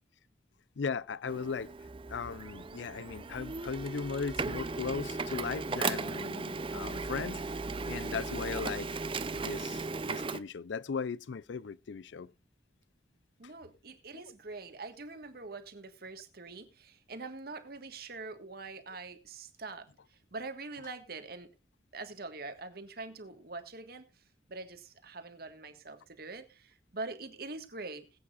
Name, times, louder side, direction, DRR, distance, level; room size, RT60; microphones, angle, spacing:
voice 1, 0.8-1.7 2.1-7.4 7.9-9.0 9.3-12.3 14.1-14.2, left 5 dB, 85° left, 0.5 m, -37 dB
Printer, 1.3-10.4, right 3 dB, 30° right, 0.5 m, -37 dB
voice 2, 13.4-21.5 21.9-24.1 24.5-28.1, right 3 dB, 55° right, 1.6 m, -44 dB
21.0 x 8.6 x 2.4 m
head